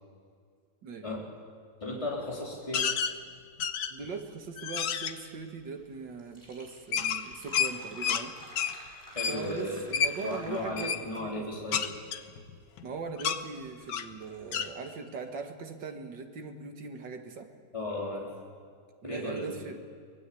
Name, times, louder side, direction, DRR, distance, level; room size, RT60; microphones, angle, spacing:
voice 1, 0.8-1.2 3.9-8.3 9.3-11.5 12.8-17.5 19.0-19.8, right 4 dB, 85° right, 5 dB, 2.4 m, -40 dB
voice 2, 1.8-2.9 9.1-9.8 10.2-11.8 17.7-18.3 19.0-19.6, left 1 dB, 15° left, -3 dB, 3.6 m, -35 dB
sound 1, 2.7-3.1 3.6-4.1 4.6-5.1 6.9-8.2 8.6-8.7 9.2-9.4 9.9-10.1 10.7-11.0 11.7-12.9 13.2-13.4 13.9-14.1 14.5-14.7, left 8 dB, 75° left, 1.6 m, -30 dB
Fill (with liquid), 5.9-6.0 6.2-11.0, right 1 dB, 25° right, 5.6 m, -50 dB
24.0 x 19.5 x 8.5 m, 2.1 s
omnidirectional pair, 1.9 m